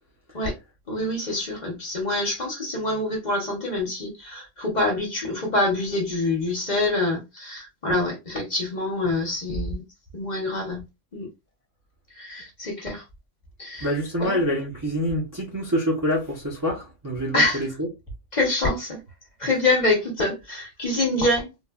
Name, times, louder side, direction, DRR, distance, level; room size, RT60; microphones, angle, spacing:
voice 1, 0.9-9.8 10.1-10.8 11.1-11.3 12.2-13.0 13.6-13.9 14.2-14.4 17.3-17.6 18.3-19.0 19.4-21.5, left 2 dB, 40° left, 0.9 m, -25 dB
voice 2, 13.8-17.9, equal, 20° right, 0.5 m, -26 dB
3.3 x 2.1 x 2.2 m
omnidirectional pair, 1.3 m